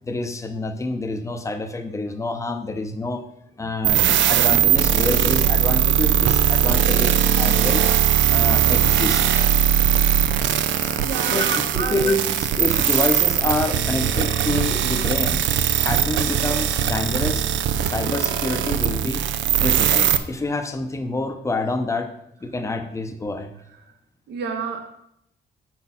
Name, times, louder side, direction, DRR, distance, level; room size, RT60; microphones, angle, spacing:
voice 1, 0.0-3.2 3.6-7.9 8.3-9.5 10.8-15.4 15.8-17.5 17.8-19.2 19.6-22.1 22.4-23.6, left 2 dB, 15° left, 6 dB, 0.7 m, -27 dB
sound 1, 3.8-20.2, right 10 dB, 80° right, 0.6 m, -20 dB
voice 2, 10.7-12.1 24.3-24.9, right 6 dB, 60° right, 4 dB, 1.0 m, -30 dB
8.0 x 6.2 x 5.6 m, 0.75 s
wide cardioid pair, 165°, 19 cm